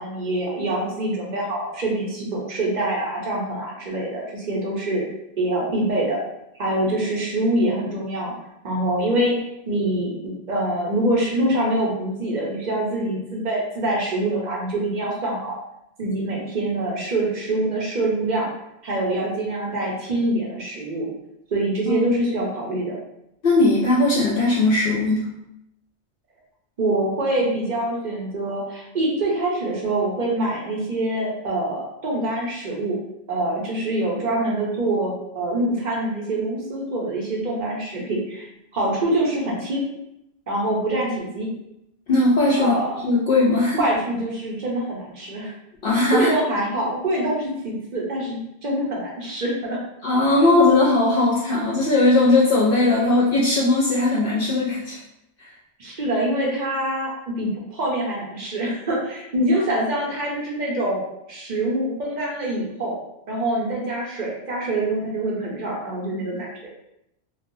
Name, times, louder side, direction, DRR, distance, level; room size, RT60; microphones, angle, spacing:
voice 1, 0.0-5.0 5.4-6.2 6.6-8.3 8.6-9.3 9.7-15.5 16.0-18.5 18.8-21.1 21.5-23.0 26.8-33.0 33.3-38.5 38.7-39.8 40.5-41.5 42.6-43.0 43.8-45.5 46.1-49.8 55.8-57.1 57.4-63.0 63.3-66.7, right 1 dB, 50° right, -3 dB, 0.7 m, -25 dB
voice 2, 23.4-25.3 42.1-42.8 43.0-43.8 45.8-46.3 50.0-55.0 55.4-55.5, left 2 dB, 60° left, -5 dB, 0.6 m, -18 dB
3.2 x 2.1 x 2.6 m, 0.83 s
omnidirectional pair, 1.2 m